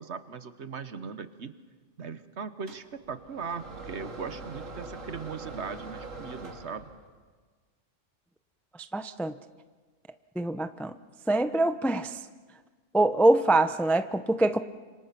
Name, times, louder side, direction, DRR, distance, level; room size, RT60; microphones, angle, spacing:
voice 1, 0.0-1.5 2.0-6.9, right 5 dB, 60° right, 11 dB, 1.4 m, -39 dB
sound 1, 2.7-7.2, right 2 dB, 85° right, 2.3 m, -43 dB
voice 2, 8.9-9.3 10.4-10.9 11.3-12.2 12.9-14.6, right 2 dB, ahead, 10 dB, 0.5 m, -24 dB
30.0 x 26.0 x 5.9 m, 1.5 s
omnidirectional pair, 1.3 m